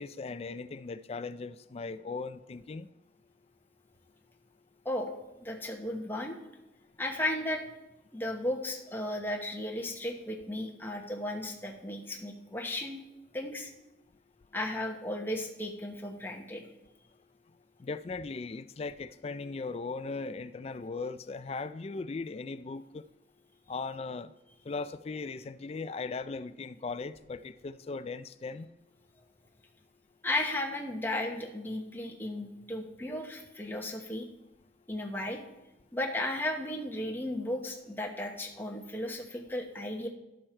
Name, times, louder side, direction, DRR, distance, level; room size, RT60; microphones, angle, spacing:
voice 1, 0.0-2.9 17.8-22.8 23.7-24.3 24.7-28.7, left 4 dB, 35° left, 0.3 m, -38 dB
voice 2, 4.8-5.2 5.4-6.4 7.0-7.6 8.1-13.0 13.3-13.7 14.5-16.7 30.2-34.3 34.9-35.4 35.9-40.1, left 1 dB, 10° left, 1.0 m, -35 dB
11.5 x 6.5 x 4.4 m
head